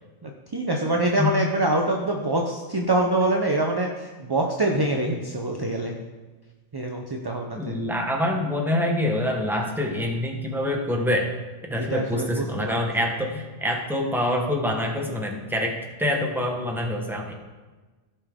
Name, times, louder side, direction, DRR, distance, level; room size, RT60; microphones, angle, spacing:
voice 1, 0.2-5.9 6.7-7.7 11.7-12.7, right 2 dB, 25° right, 2 dB, 0.6 m, -25 dB
voice 2, 7.5-11.3 11.6-17.3, left 1 dB, ahead, 1 dB, 1.0 m, -26 dB
15.5 x 5.5 x 3.6 m, 1.3 s
omnidirectional pair, 1.2 m